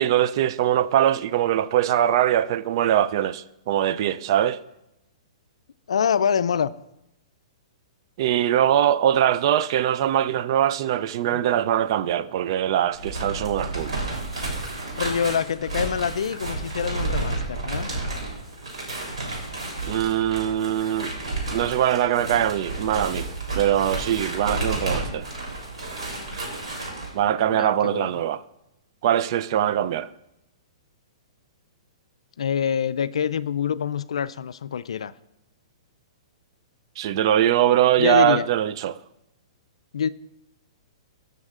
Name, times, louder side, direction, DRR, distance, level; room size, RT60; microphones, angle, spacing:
voice 1, 0.0-4.6 8.2-13.9 19.9-21.1 21.5-23.3 23.6-25.3 27.1-28.4 29.0-30.1 37.0-39.0, right 11 dB, 50° right, 0.3 m, -22 dB
voice 2, 5.9-6.7 11.3-11.4 15.0-17.9 27.5-28.1 32.4-35.1 38.0-38.5 39.9-40.1, left 7 dB, 75° left, 0.3 m, -25 dB
sound 1, 12.9-27.1, right 2 dB, 80° right, 3.3 m, -31 dB
14.0 x 6.6 x 2.4 m
hypercardioid pair, 125°, 3 cm